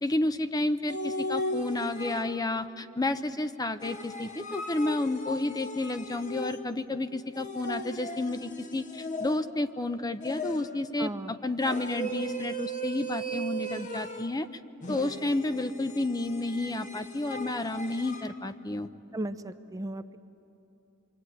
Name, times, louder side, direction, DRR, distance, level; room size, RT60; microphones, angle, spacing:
voice 1, 0.0-14.5 14.9-18.9, left 2 dB, 20° left, 10 dB, 0.7 m, -31 dB
sound 1, 0.9-2.6 3.8-6.9 7.3-9.7 10.2-10.9 11.6-14.4 14.8-18.3, equal, 40° left, 1.2 m, -37 dB
voice 2, 11.0-11.3 19.1-20.2, right 1 dB, 15° right, 10 dB, 0.6 m, -35 dB
26.5 x 24.0 x 9.2 m, 2.8 s
head